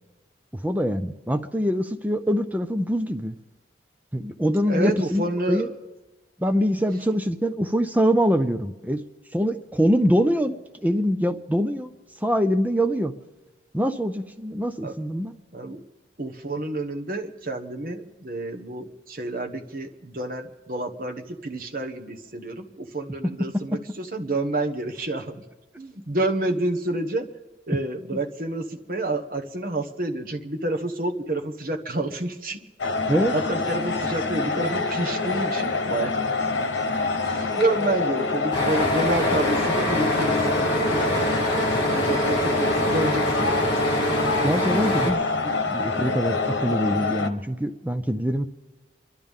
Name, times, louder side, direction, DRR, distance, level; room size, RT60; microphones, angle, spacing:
voice 1, 0.6-3.3 4.1-5.7 6.4-9.0 9.3-10.5 10.8-11.9 12.2-13.1 13.7-15.4 28.1-28.2 33.1-33.3 44.4-48.5, equal, 10° right, 8 dB, 0.5 m, -24 dB
voice 2, 4.7-5.7 14.8-14.9 15.5-15.8 16.2-25.4 25.8-27.3 27.7-32.6 33.3-36.2 37.2-43.7 45.4-45.5, right 2 dB, 50° right, 4 dB, 1.3 m, -29 dB
sound 1, 32.8-47.3, left 3 dB, 90° left, 1.1 m, -26 dB
sound 2, 38.5-45.1, equal, 30° left, 3.2 m, -25 dB
28.0 x 12.0 x 3.7 m, 1.2 s
head